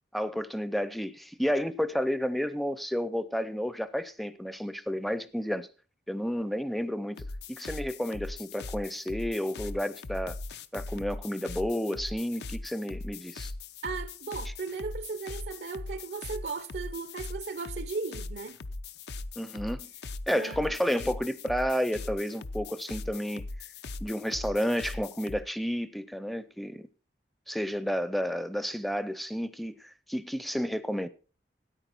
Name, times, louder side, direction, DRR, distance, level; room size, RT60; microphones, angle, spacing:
voice 1, 0.1-5.7 6.1-10.4 10.7-13.5 19.4-19.9 20.3-23.4 24.0-26.9 27.5-31.1, equal, ahead, 0.5 m, -31 dB
sound 1, 7.2-25.4, left 2 dB, 70° left, 0.6 m, -40 dB
voice 2, 13.8-18.6 20.3-20.8, right 4 dB, 70° right, 0.6 m, -36 dB
13.5 x 9.6 x 4.4 m
head